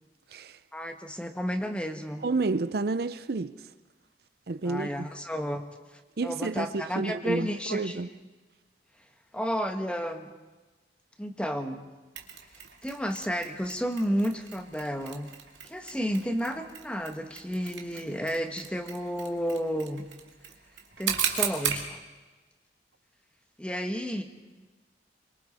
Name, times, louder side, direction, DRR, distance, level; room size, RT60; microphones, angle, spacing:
voice 1, 0.7-2.2 4.6-5.7 6.2-8.0 9.3-10.3 11.2-11.9 12.8-15.3 15.6-20.0 21.0-22.0 23.6-24.2, equal, 5° left, 1.3 m, -31 dB
voice 2, 2.2-3.7 4.5-5.1 6.2-8.1, right 3 dB, 60° right, 0.5 m, -30 dB
Mechanisms, 12.2-21.9, right 8 dB, 80° right, 2.3 m, -37 dB
26.0 x 23.5 x 4.2 m
head